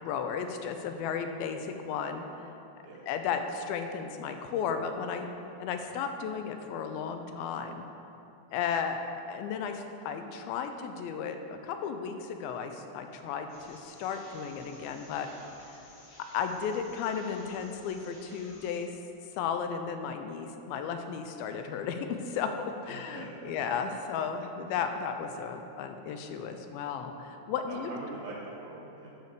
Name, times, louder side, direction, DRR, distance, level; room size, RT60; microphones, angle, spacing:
voice 1, 0.0-2.3 3.1-5.3 5.6-7.8 8.5-9.0 9.3-15.3 15.7-15.8 16.3-19.0 19.3-27.9, left 6 dB, 85° left, 6 dB, 2.4 m, -34 dB
sound 1, 13.5-18.8, left 1 dB, 45° left, 3.4 m, -54 dB
voice 2, 14.0-14.3 22.8-23.8 27.7-29.1, right 2 dB, 70° right, -4 dB, 3.6 m, -44 dB
9.1 x 5.6 x 6.7 m, 2.9 s
omnidirectional pair, 4.3 m